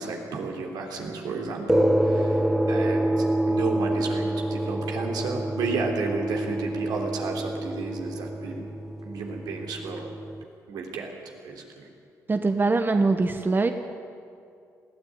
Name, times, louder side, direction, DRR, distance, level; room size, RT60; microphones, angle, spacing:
voice 1, 0.0-8.6 9.0-10.1 10.7-11.1 11.4-11.9, right 4 dB, 80° right, 1 dB, 3.3 m, -32 dB
sound 1, 1.7-10.4, right 1 dB, 5° right, 1.0 m, -27 dB
voice 2, 12.3-13.7, right 3 dB, 30° right, 7 dB, 1.2 m, -22 dB
20.5 x 14.0 x 9.6 m, 2.4 s
supercardioid pair, 65°, 7 cm